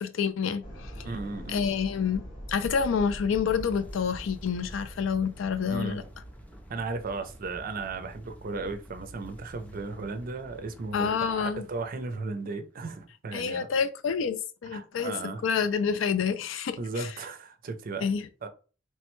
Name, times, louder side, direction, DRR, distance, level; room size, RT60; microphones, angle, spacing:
voice 1, 0.0-1.1 1.5-6.0 10.9-11.7 13.3-15.1 15.4-17.1 18.0-18.3, left 6 dB, 85° left, 0.4 m, -28 dB
sound 1, 0.6-6.9, equal, 65° left, 1.6 m, -46 dB
voice 2, 1.0-1.6 5.7-6.0 6.7-13.7 14.7-15.4 16.8-18.1 18.4-18.5, right 3 dB, 50° right, 0.4 m, -35 dB
sound 2, 1.7-12.4, equal, 10° left, 0.4 m, -46 dB
3.2 x 2.1 x 3.0 m
head